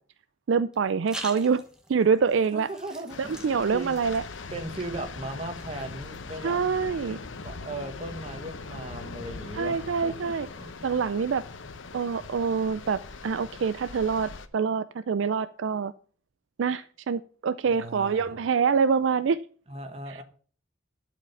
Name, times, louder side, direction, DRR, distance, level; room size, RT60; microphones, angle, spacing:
voice 1, 0.5-1.6 1.9-2.7 3.2-4.2 6.4-7.2 9.6-10.5 10.8-11.4 11.9-15.9 16.6-19.4 20.1-20.2, right 6 dB, 65° right, 14 dB, 0.4 m, -26 dB
sound 1, 0.7-6.9, equal, 5° right, 1.3 m, -47 dB
voice 2, 2.5-3.9 4.5-6.6 7.4-10.8 11.8-12.3 17.7-18.3 19.7-20.2, right 1 dB, 30° right, 6 dB, 1.5 m, -38 dB
sound 2, 3.1-14.5, left 4 dB, 70° left, 0.8 m, -41 dB
11.5 x 5.1 x 7.0 m, 0.43 s
head